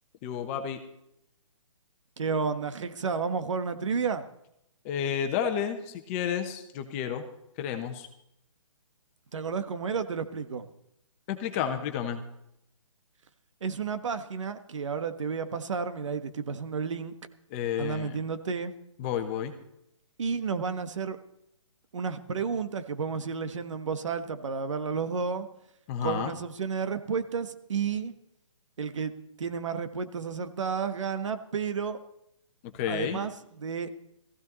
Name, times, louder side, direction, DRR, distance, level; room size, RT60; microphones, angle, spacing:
voice 1, 0.2-0.8 4.8-7.2 7.6-8.1 11.3-12.2 17.5-18.2 19.0-19.5 25.9-26.3 32.7-33.2, left 8 dB, 25° left, 7 dB, 1.2 m, -31 dB
voice 2, 2.2-4.3 9.3-10.7 13.6-17.2 17.8-18.7 20.2-21.2 21.9-25.5 26.0-28.1 28.8-29.1 29.4-32.0 32.9-33.9, right 5 dB, 65° right, 10 dB, 1.4 m, -31 dB
15.5 x 15.5 x 4.1 m, 0.78 s
hypercardioid pair, 155°, 17 cm